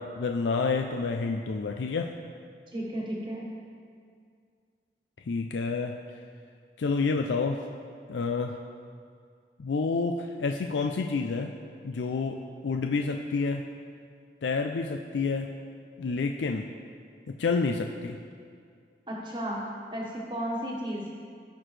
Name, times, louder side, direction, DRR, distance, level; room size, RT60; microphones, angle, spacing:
voice 1, 0.0-2.1 5.3-6.0 6.8-7.6 8.1-8.6 9.6-11.5 11.8-13.6 14.4-15.5 16.0-16.7 17.4-18.2, left 4 dB, 90° left, 4 dB, 0.4 m, -29 dB
voice 2, 2.7-3.5 19.1-19.6 19.9-21.1, equal, 25° right, -3 dB, 1.3 m, -33 dB
14.5 x 5.9 x 3.3 m, 2.2 s
head